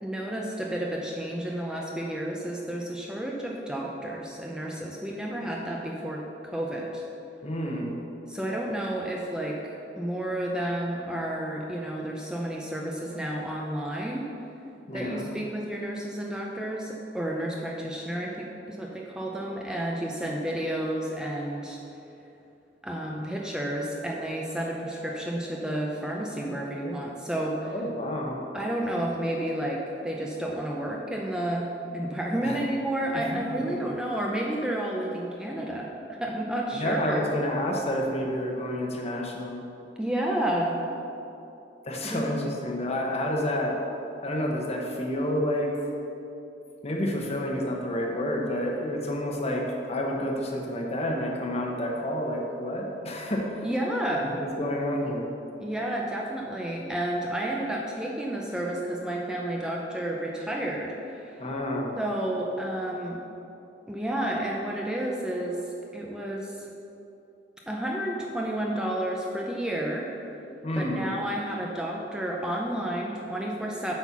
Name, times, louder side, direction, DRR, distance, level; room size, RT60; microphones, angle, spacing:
voice 1, 0.0-7.0 8.3-9.6 10.0-14.3 14.9-21.8 22.8-27.7 28.5-35.9 36.2-37.3 40.0-40.8 42.0-42.3 53.6-54.4 55.6-61.4 62.0-63.2 63.9-65.6 65.9-66.7 67.7-70.1 70.7-73.9, right 1 dB, 5° right, -2 dB, 0.6 m, -31 dB
voice 2, 7.4-8.0 14.9-15.3 27.6-28.4 32.4-32.6 33.5-33.8 36.7-39.6 41.9-43.8 44.2-45.7 46.8-53.5 54.3-55.3 61.4-62.0 70.6-71.1, left 1 dB, 35° left, 0 dB, 1.0 m, -29 dB
8.0 x 4.4 x 5.9 m, 2.8 s
head